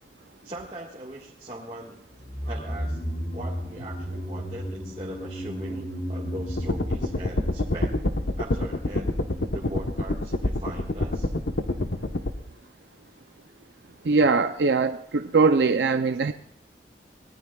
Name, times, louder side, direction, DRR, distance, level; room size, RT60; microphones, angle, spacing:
voice 1, 0.4-2.0 2.4-3.0 3.3-7.9 8.4-11.3, right 1 dB, 30° right, -6 dB, 1.7 m, -40 dB
sound 1, 2.2-8.6 8.8-8.9, equal, 40° left, 2.7 m, -34 dB
sound 2, 6.6-12.3, left 1 dB, 85° left, 1.1 m, -27 dB
voice 2, 14.0-16.3, right 4 dB, 80° right, 9 dB, 0.5 m, -21 dB
24.5 x 19.0 x 2.4 m, 0.75 s
head